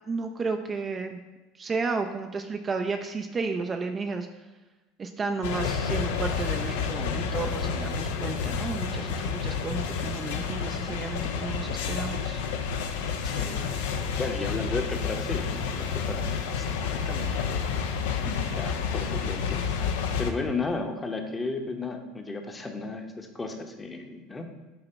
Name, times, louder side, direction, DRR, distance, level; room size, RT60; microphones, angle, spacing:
voice 1, 0.1-1.2 1.6-4.3 5.0-12.4, right 4 dB, 25° right, 5 dB, 0.4 m, -32 dB
sound 1, 5.4-20.3, left 6 dB, 65° left, 0.5 m, -30 dB
voice 2, 13.2-17.6 18.2-24.5, left 3 dB, 20° left, 4 dB, 0.9 m, -35 dB
7.9 x 2.9 x 4.5 m, 1.2 s
figure-of-eight pair, 75°, 0 cm